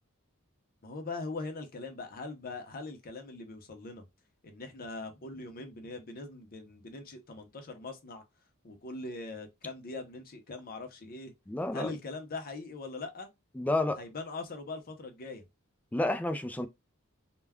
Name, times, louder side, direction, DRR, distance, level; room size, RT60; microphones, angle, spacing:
voice 1, 0.8-4.0 4.4-8.2 8.6-11.3 11.7-13.3 14.0-15.4, left 3 dB, 45° left, 0.6 m, -41 dB
voice 2, 11.5-11.9 13.6-14.0 15.9-16.7, left 2 dB, 5° left, 0.3 m, -30 dB
2.2 x 2.2 x 3.4 m
head